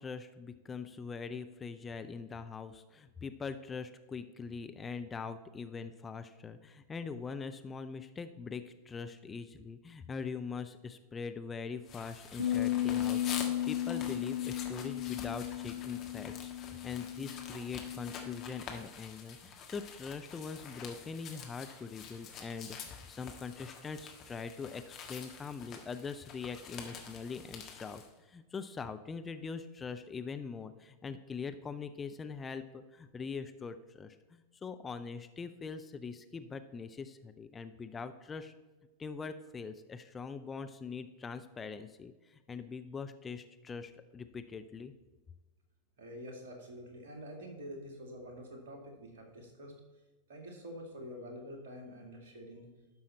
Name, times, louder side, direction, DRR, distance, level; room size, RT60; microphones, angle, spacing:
voice 1, 0.0-38.5 39.0-44.9, left 5 dB, 20° left, 9 dB, 0.5 m, -42 dB
sound 1, 11.9-28.1, left 6 dB, 35° left, 1.5 m, -47 dB
Bass guitar, 12.4-18.6, left 12 dB, 80° right, 0.7 m, -35 dB
voice 2, 46.0-49.7 50.3-52.7, equal, 55° right, 1 dB, 2.3 m, -47 dB
12.5 x 5.6 x 4.2 m, 1.2 s
figure-of-eight pair, 90°, 0 cm